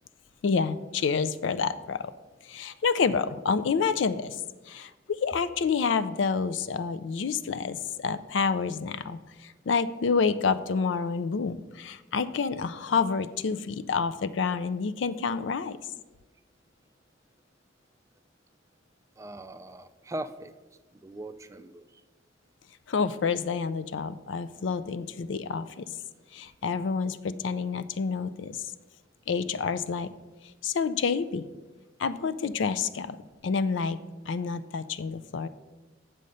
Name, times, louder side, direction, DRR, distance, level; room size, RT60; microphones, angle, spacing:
voice 1, 0.4-2.1 2.5-4.4 4.7-15.8 22.9-25.8 26.3-28.6 29.3-30.1 30.6-31.4 32.0-33.2 33.4-34.0 34.3-35.5, left 5 dB, 70° left, 13 dB, 0.4 m, -28 dB
voice 2, 19.2-20.5 21.0-21.8, right 1 dB, 15° right, 10 dB, 0.3 m, -39 dB
7.7 x 6.4 x 5.4 m, 1.2 s
head